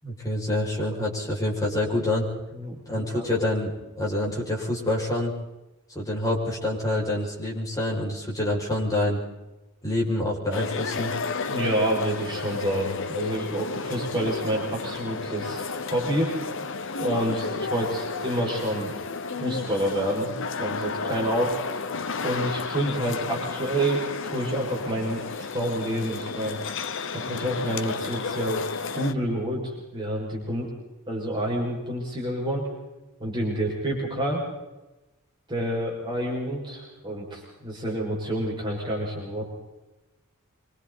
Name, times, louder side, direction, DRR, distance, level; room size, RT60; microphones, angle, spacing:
voice 1, 0.0-2.3 2.9-3.7 4.0-5.4 5.9-9.2 9.8-11.1, left 1 dB, 15° left, -4 dB, 6.5 m, -26 dB
voice 2, 2.5-3.3 11.5-16.3 17.0-18.9 19.4-21.6 22.2-26.6 27.1-28.6 28.9-30.7 31.1-32.7 33.2-34.4 35.5-39.5, right 1 dB, 20° right, -3 dB, 6.2 m, -28 dB
sound 1, 10.5-29.1, left 4 dB, 60° left, 1.0 m, -32 dB
26.0 x 26.0 x 4.2 m, 1.0 s
head